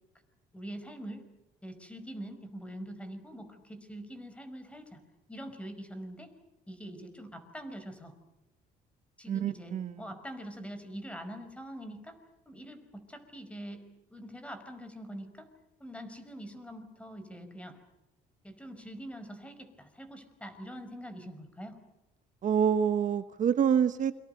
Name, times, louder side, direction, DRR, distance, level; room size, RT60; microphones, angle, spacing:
voice 1, 0.5-1.3 1.6-5.0 5.3-6.3 6.7-8.1 9.2-12.2 12.5-13.8 14.1-15.5 15.8-17.8 18.4-21.8, equal, 5° left, 9 dB, 5.2 m, -44 dB
voice 2, 9.3-10.0 22.4-24.1, right 8 dB, 50° right, 11 dB, 1.1 m, -27 dB
29.0 x 25.0 x 6.6 m, 0.99 s
cardioid pair, 110°, 17 cm